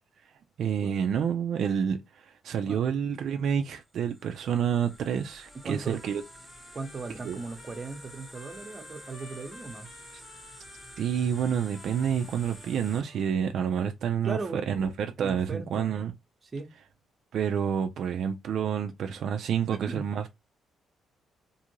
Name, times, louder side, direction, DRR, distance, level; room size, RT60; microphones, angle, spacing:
voice 1, 0.6-6.2 7.2-7.4 11.0-16.1 17.3-20.3, right 8 dB, 70° right, 0.3 m, -29 dB
sound 1, 3.9-13.0, equal, 5° left, 0.9 m, -50 dB
Trumpet, 5.4-13.5, left 3 dB, 50° left, 0.9 m, -53 dB
voice 2, 5.6-6.0 6.7-9.9 14.2-14.6 15.2-16.0 16.4-16.7 19.1-19.2 19.7-20.1, right 3 dB, 30° right, 0.8 m, -37 dB
2.6 x 2.5 x 2.9 m
cardioid pair, 90°, 0 cm